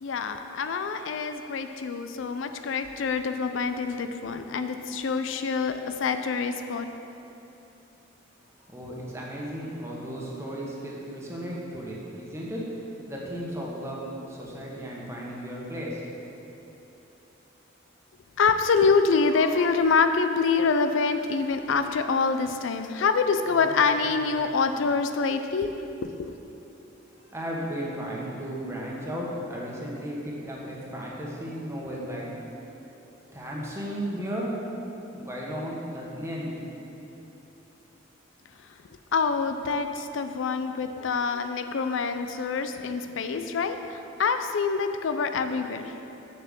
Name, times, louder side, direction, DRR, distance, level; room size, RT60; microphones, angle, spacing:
voice 1, 0.0-6.9 18.4-25.7 26.2-26.4 39.1-45.9, left 5 dB, 75° left, 8 dB, 0.4 m, -26 dB
voice 2, 8.7-12.6 13.1-16.1 27.3-32.3 33.3-34.6 35.1-36.5, equal, 15° right, -4 dB, 1.4 m, -35 dB
7.1 x 5.7 x 7.5 m, 2.9 s
head